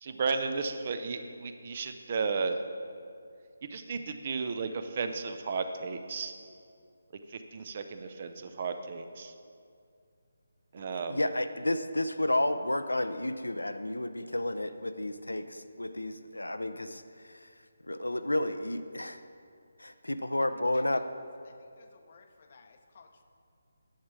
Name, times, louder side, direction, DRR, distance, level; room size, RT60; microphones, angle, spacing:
voice 1, 0.0-2.6 3.7-6.3 7.3-9.3 10.7-11.2, right 4 dB, 35° right, 8 dB, 0.5 m, -34 dB
voice 2, 10.8-17.4 17.9-19.2 19.8-21.0, left 1 dB, 75° left, 10 dB, 0.5 m, -31 dB
voice 3, 21.4-23.2, left 5 dB, 40° left, 6 dB, 0.7 m, -57 dB
10.0 x 7.3 x 4.7 m, 2.3 s
figure-of-eight pair, 150°, 0 cm